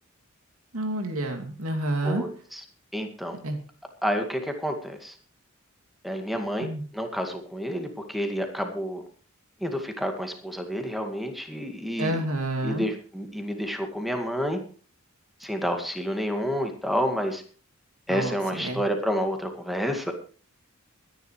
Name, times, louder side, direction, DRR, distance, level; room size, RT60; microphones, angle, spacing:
voice 1, 0.7-2.2 3.4-3.6 6.6-6.8 12.0-12.9 18.1-18.8, right 1 dB, 75° right, 4 dB, 2.6 m, -29 dB
voice 2, 2.0-2.6 2.9-3.4 4.0-5.1 6.0-9.0 9.6-12.2 12.6-14.6 15.4-17.4 18.1-20.1, equal, ahead, 5 dB, 2.1 m, -29 dB
23.0 x 10.5 x 3.2 m, 0.40 s
head